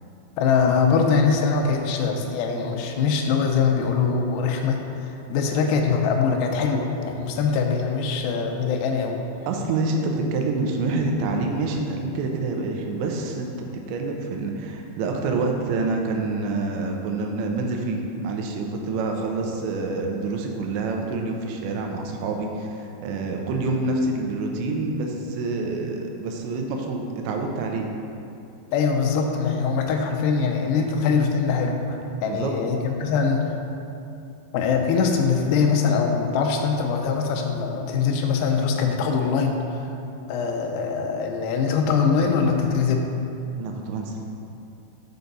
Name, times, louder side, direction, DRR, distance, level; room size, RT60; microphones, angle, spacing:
voice 1, 0.4-9.2 28.7-33.5 34.5-39.9 40.3-43.0, left 5 dB, 80° left, 3 dB, 2.7 m, -22 dB
voice 2, 9.5-27.9 32.3-32.5 43.6-44.2, right 3 dB, 90° right, 2 dB, 3.1 m, -27 dB
7.9 x 5.8 x 4.0 m, 2.7 s
omnidirectional pair, 5.1 m